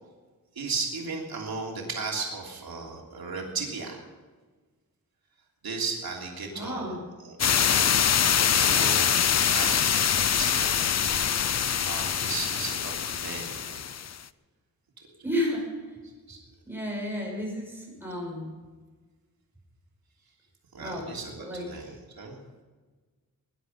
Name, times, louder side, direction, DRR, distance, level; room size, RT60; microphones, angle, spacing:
voice 1, 0.5-4.0 5.6-6.9 7.2-7.9 8.5-10.8 11.8-13.8 16.3-16.4 20.7-22.3, right 4 dB, 85° right, -1 dB, 3.1 m, -35 dB
voice 2, 6.5-7.0 15.2-15.9 16.6-18.6 20.8-21.9, left 1 dB, 5° right, -3 dB, 6.2 m, -33 dB
sound 1, 7.4-14.1, left 8 dB, 50° left, 0.5 m, -24 dB
20.0 x 11.0 x 5.4 m, 1.4 s
wide cardioid pair, 155°, 36 cm